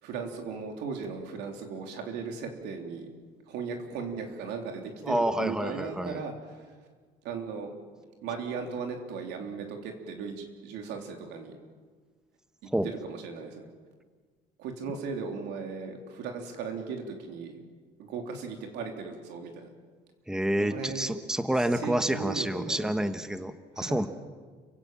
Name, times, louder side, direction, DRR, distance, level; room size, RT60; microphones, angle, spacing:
voice 1, 0.0-3.1 3.5-6.7 7.2-7.7 8.2-11.5 12.6-13.7 14.6-17.6 18.0-19.7 20.5-21.1 21.7-22.9 23.7-24.1, right 5 dB, 90° right, 3 dB, 3.5 m, -37 dB
voice 2, 5.0-6.2 12.7-12.9 20.3-24.1, right 1 dB, 5° right, 9 dB, 1.2 m, -28 dB
29.5 x 16.5 x 7.5 m, 1.5 s
cardioid pair, 110°, 17 cm